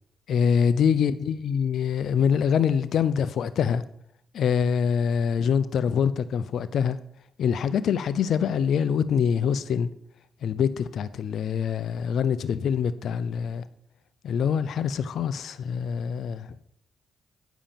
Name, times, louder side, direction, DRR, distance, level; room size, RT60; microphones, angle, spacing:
voice 1, 0.3-3.8 4.3-7.0 7.4-9.9 10.4-13.6 14.2-16.6, left 7 dB, 75° left, 0.6 m, -24 dB
10.0 x 7.1 x 5.7 m
cardioid pair, 70°, 0 cm